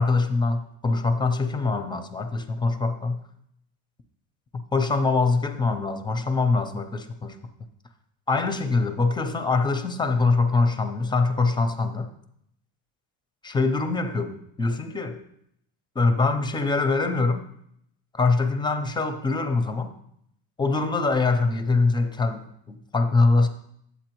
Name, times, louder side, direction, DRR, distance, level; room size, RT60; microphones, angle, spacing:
voice 1, 0.0-3.2 4.7-7.4 8.3-12.1 13.4-15.2 16.0-17.4 18.1-19.9 20.6-23.5, left 3 dB, 10° left, 8 dB, 0.5 m, -23 dB
8.2 x 7.9 x 3.0 m, 0.73 s
cardioid pair, 130°, 37 cm